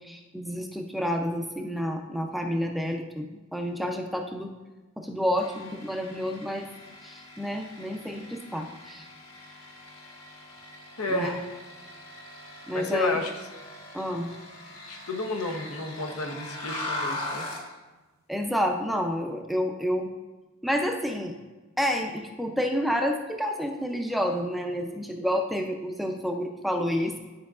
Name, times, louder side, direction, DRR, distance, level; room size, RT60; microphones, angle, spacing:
voice 1, 0.0-4.5 5.0-6.6 7.0-9.0 11.1-11.4 12.7-13.2 13.9-14.3 18.3-20.1 20.6-21.4 21.8-27.2, equal, ahead, 3 dB, 0.4 m, -29 dB
sound 1, 5.4-17.7, left 2 dB, 70° left, 1.5 m, -41 dB
voice 2, 11.0-11.6 12.7-13.3 14.9-17.5, left 2 dB, 90° left, 3 dB, 0.9 m, -31 dB
10.5 x 5.1 x 2.4 m, 1.2 s
head